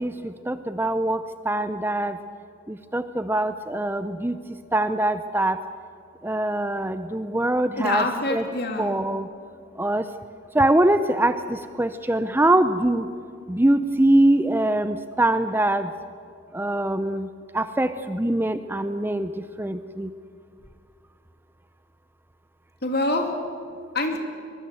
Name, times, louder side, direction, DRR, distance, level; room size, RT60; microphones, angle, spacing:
voice 1, 0.0-2.2 2.7-4.4 4.7-5.6 6.2-8.4 8.8-9.3 9.8-10.1 10.5-13.1 13.5-15.9 16.5-17.3 17.5-20.1, right 1 dB, 10° right, 11 dB, 0.6 m, -23 dB
voice 2, 7.8-8.9 22.8-23.3 23.9-24.2, left 2 dB, 50° left, 4 dB, 2.9 m, -25 dB
23.0 x 22.5 x 7.8 m, 2.4 s
head